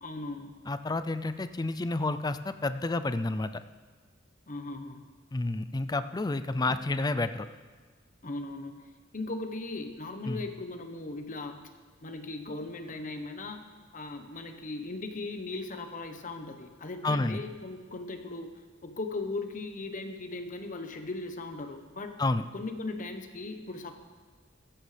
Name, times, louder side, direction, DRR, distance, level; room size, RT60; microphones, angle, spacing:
voice 1, 0.0-0.6 4.5-5.1 8.2-11.7 12.0-13.6 13.9-22.2 22.5-23.9, left 2 dB, 45° left, 7 dB, 1.0 m, -38 dB
voice 2, 0.7-3.6 5.3-7.5 10.3-10.4 17.0-17.4 22.2-22.5, left 2 dB, 20° left, 11 dB, 0.4 m, -30 dB
14.5 x 14.5 x 3.4 m, 1.5 s
head